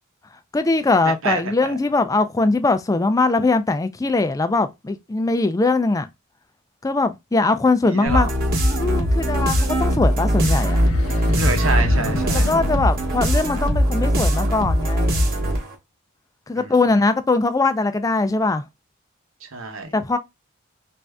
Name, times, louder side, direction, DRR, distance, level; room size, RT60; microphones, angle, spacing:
voice 1, 0.5-6.1 6.8-8.3 8.8-10.8 12.3-15.3 16.5-18.6 19.9-20.2, left 3 dB, 15° left, 0.3 m, -21 dB
voice 2, 1.2-1.7 7.9-8.3 11.4-12.5 16.5-16.7 19.4-19.9, right 3 dB, 70° right, 0.9 m, -27 dB
sound 1, 8.1-15.7, equal, 45° right, 1.0 m, -20 dB
sound 2, 10.4-13.9, left 2 dB, 80° left, 0.6 m, -30 dB
3.2 x 2.6 x 3.4 m
head